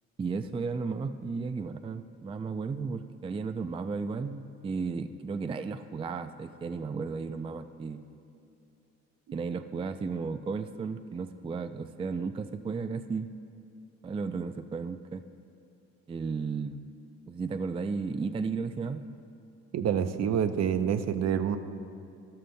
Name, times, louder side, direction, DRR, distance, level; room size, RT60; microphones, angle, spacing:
voice 1, 0.2-8.0 9.3-13.3 14.0-15.2 16.1-16.8 17.3-19.1, right 4 dB, 20° right, 10 dB, 0.3 m, -34 dB
voice 2, 19.7-21.6, right 8 dB, 55° right, 9 dB, 0.7 m, -27 dB
13.0 x 12.5 x 2.2 m, 2.5 s
supercardioid pair, 65°, 31 cm